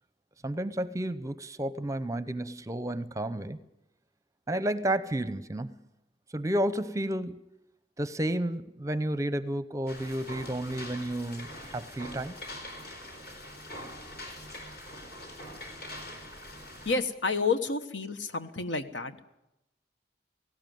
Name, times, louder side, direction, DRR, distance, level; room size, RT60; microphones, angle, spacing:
voice 1, 0.4-3.6 4.5-5.7 6.3-7.4 8.0-12.3, right 1 dB, 15° right, 14 dB, 0.6 m, -31 dB
sound 1, 9.9-17.0, left 1 dB, 55° left, 4.3 m, -43 dB
voice 2, 16.8-19.2, left 4 dB, 80° left, 9 dB, 1.3 m, -30 dB
18.0 x 16.5 x 9.2 m, 0.90 s
head